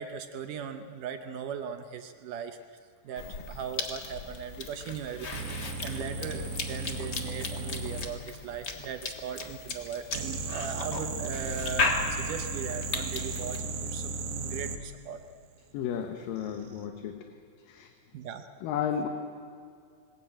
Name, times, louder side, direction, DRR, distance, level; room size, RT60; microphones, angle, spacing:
voice 1, 0.0-2.6 3.0-15.2 18.1-18.5, right 7 dB, 75° right, 7 dB, 2.2 m, -39 dB
Cough / Chewing mastication, 3.2-13.6, left 3 dB, 45° left, 1.5 m, -36 dB
sound 1, 5.3-8.1 10.1-14.8 16.4-16.8, right 3 dB, 90° right, 3.3 m, -35 dB
voice 2, 15.7-17.3 17.7-17.9 18.6-19.1, left 8 dB, 75° left, 5 dB, 2.8 m, -33 dB
21.5 x 19.0 x 8.9 m, 2.3 s
omnidirectional pair, 4.1 m